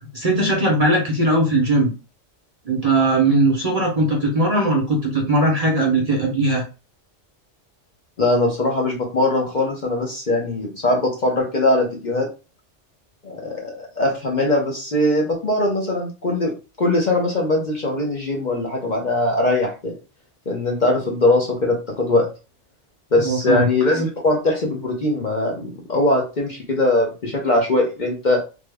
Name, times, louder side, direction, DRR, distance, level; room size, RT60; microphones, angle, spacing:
voice 1, 0.0-1.9 2.6-6.6 23.2-23.7, right 2 dB, 40° right, 0 dB, 0.6 m, -19 dB
voice 2, 8.2-12.3 13.2-19.9 20.5-22.3 23.1-28.4, left 2 dB, 45° left, -1 dB, 0.7 m, -21 dB
3.4 x 2.0 x 3.3 m, 0.32 s
omnidirectional pair, 1.3 m